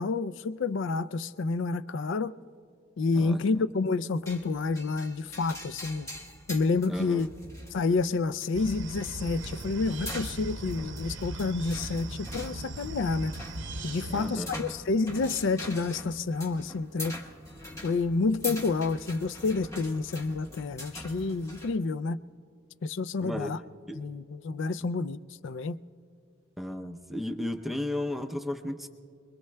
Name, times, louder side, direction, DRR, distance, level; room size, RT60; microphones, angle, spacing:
voice 1, 0.0-2.3 3.0-6.1 6.5-7.3 7.7-13.4 13.8-17.2 17.8-22.2 22.8-23.6 24.0-25.2 25.4-25.8, left 3 dB, 60° left, 0.4 m, -29 dB
voice 2, 3.1-3.7 6.9-7.3 14.1-14.5 23.2-23.6 23.9-24.0 26.6-28.9, left 1 dB, ahead, 0.5 m, -34 dB
sound 1, 4.3-21.8, left 1 dB, 15° left, 1.1 m, -43 dB
sound 2, 8.5-14.4, right 2 dB, 60° right, 0.7 m, -38 dB
28.0 x 21.5 x 2.2 m
head